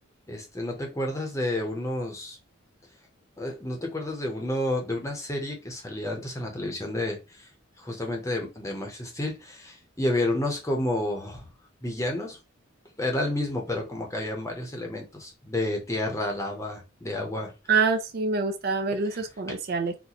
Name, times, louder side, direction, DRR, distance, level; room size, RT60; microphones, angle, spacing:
voice 1, 0.3-2.4 3.4-7.2 7.8-11.4 11.8-12.4 13.0-17.5, left 1 dB, 15° left, 0.7 m, -30 dB
voice 2, 17.7-19.9, right 4 dB, 45° right, 0.4 m, -26 dB
4.0 x 2.2 x 2.9 m
head